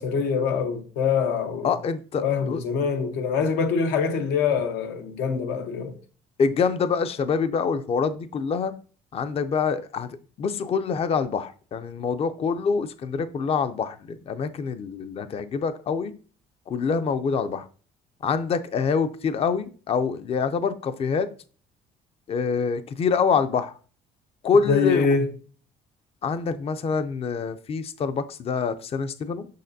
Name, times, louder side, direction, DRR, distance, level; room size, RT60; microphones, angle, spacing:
voice 1, 0.0-1.7 2.2-5.9 24.7-25.3, left 5 dB, 90° left, 0.9 m, -24 dB
voice 2, 1.6-2.6 6.4-8.7 9.1-10.1 10.4-16.1 16.7-17.7 18.2-21.3 22.3-23.7 24.4-25.1 26.2-29.5, left 5 dB, 35° left, 0.4 m, -25 dB
6.6 x 5.7 x 2.6 m
cardioid pair, 110°, 17 cm